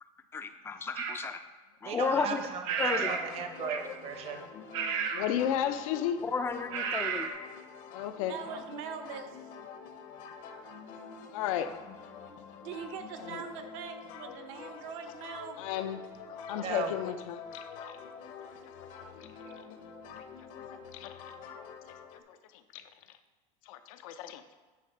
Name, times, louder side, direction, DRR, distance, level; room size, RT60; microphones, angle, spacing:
voice 1, 0.3-1.4 1.8-2.4 2.8-3.1 6.2-7.3, left 5 dB, 15° left, 8 dB, 0.4 m, -32 dB
sound 1, 1.0-1.2 2.6-3.3 3.7-4.0 4.7-5.3 6.7-7.3, right 7 dB, 90° right, 1.0 m, -32 dB
voice 2, 1.8-4.4 8.4-8.6 16.5-16.9, right 6 dB, 35° right, 5 dB, 0.7 m, -37 dB
sound 2, 2.6-22.2, left 6 dB, 45° left, 0.8 m, -46 dB
voice 3, 5.1-6.2 7.9-8.4 11.3-11.8 13.3-13.4 15.6-16.0 16.3-18.0 18.4-18.5 18.8-18.9 20.2-20.3 20.5-20.6 20.9-21.1 22.3-22.4 22.7-22.8 23.7-24.5, left 10 dB, 85° left, 9 dB, 0.7 m, -34 dB
voice 4, 8.3-9.3 12.6-15.6 19.3-19.6, right 7 dB, 70° right, 7 dB, 1.0 m, -42 dB
9.2 x 3.3 x 5.5 m, 1.3 s
supercardioid pair, 150°, 17 cm